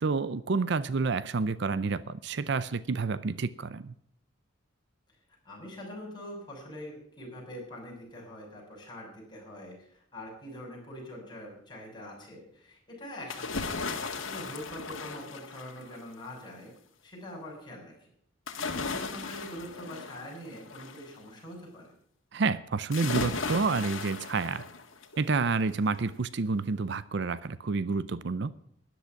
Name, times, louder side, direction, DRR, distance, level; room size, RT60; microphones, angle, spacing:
voice 1, 0.0-3.9 22.3-24.6 25.2-28.5, right 4 dB, 60° right, 0.5 m, -29 dB
voice 2, 5.4-16.7 17.0-18.1 18.7-21.9, left 1 dB, 25° left, 6.6 m, -44 dB
sound 1, 13.3-16.1 18.5-21.1 22.9-25.2 25.6-25.7, left 4 dB, 85° left, 1.8 m, -36 dB
13.0 x 11.0 x 5.9 m
head